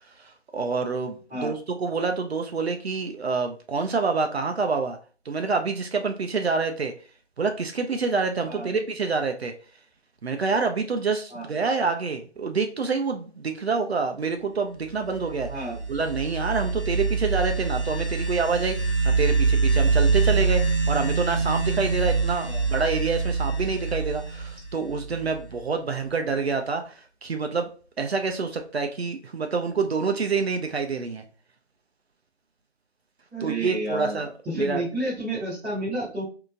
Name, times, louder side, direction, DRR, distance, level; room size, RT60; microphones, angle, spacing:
voice 1, 0.5-5.0 5.3-6.9 7.4-9.5 10.2-15.5 15.9-20.6 20.9-26.9 27.2-27.7 28.0-31.2 33.4-34.8, right 4 dB, 65° right, 5 dB, 0.6 m, -27 dB
sound 1, 15.0-25.6, right 4 dB, 25° left, 0.6 m, -25 dB
voice 2, 33.3-36.2, right 1 dB, 5° right, -14 dB, 0.9 m, -30 dB
3.6 x 2.8 x 2.5 m, 0.38 s
figure-of-eight pair, 160°, 34 cm